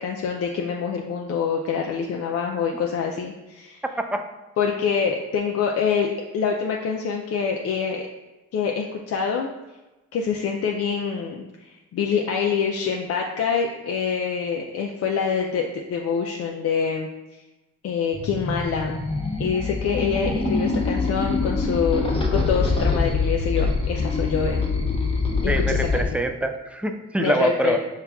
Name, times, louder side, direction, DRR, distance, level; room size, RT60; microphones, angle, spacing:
voice 1, 0.0-3.8 4.6-6.1 6.3-8.0 8.5-9.5 10.1-17.1 17.8-19.0 19.4-24.7 25.4-26.0 27.2-27.8, left 6 dB, 55° left, 0 dB, 0.5 m, -25 dB
sound 1, 18.1-26.0, left 3 dB, 20° left, 0.8 m, -24 dB
voice 2, 25.4-27.8, right 1 dB, 5° right, 6 dB, 0.3 m, -24 dB
5.6 x 2.3 x 3.5 m, 1.1 s
cardioid pair, 90°, 30 cm